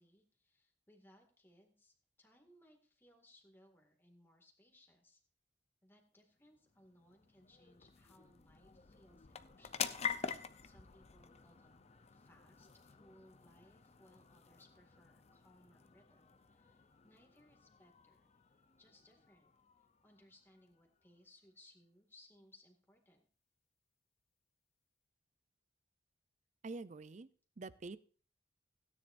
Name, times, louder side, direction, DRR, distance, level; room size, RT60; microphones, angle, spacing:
voice 1, 0.0-5.2 5.8-10.0 10.2-11.8 12.1-18.3 18.8-19.5 20.0-23.2, left 1 dB, 10° left, 2 dB, 2.0 m, -66 dB
sound 1, 6.3-21.2, left 7 dB, 35° left, 0.6 m, -48 dB
voice 2, 26.6-27.3 27.6-28.0, right 3 dB, 40° right, 16 dB, 0.5 m, -46 dB
16.5 x 9.8 x 2.6 m, 0.41 s
head